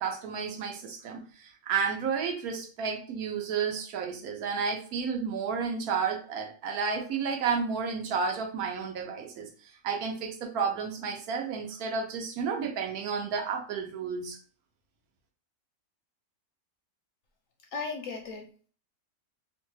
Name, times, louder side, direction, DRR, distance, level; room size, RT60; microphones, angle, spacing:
voice 1, 0.0-9.5 9.8-14.4, right 5 dB, 70° right, 2 dB, 1.1 m, -31 dB
voice 2, 17.7-18.7, left 4 dB, 70° left, 2 dB, 0.8 m, -37 dB
2.9 x 2.2 x 3.1 m, 0.40 s
omnidirectional pair, 1.7 m